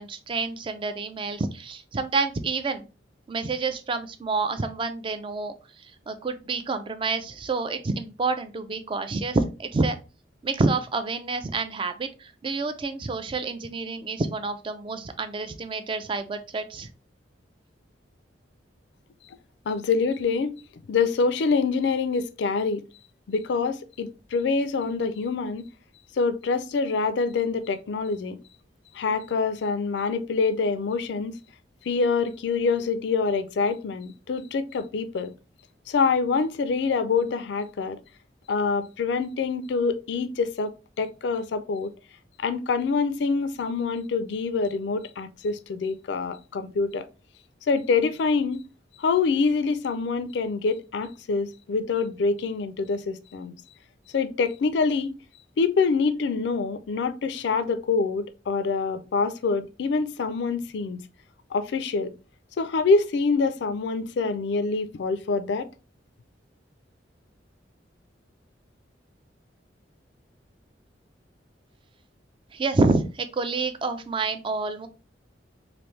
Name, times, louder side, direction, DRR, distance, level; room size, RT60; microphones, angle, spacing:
voice 1, 0.0-2.8 3.3-9.9 10.4-16.9 72.5-74.9, right 3 dB, 25° right, 0.3 m, -28 dB
voice 2, 19.7-20.6 20.9-22.8 23.3-25.7 26.2-28.4 28.9-31.4 31.8-35.3 35.9-38.0 38.5-40.7 41.0-41.9 42.4-47.1 47.7-48.6 49.0-53.5 54.1-55.1 55.6-61.0 61.5-62.1 62.6-65.7, left 4 dB, 65° left, 0.3 m, -25 dB
3.3 x 2.5 x 3.1 m
head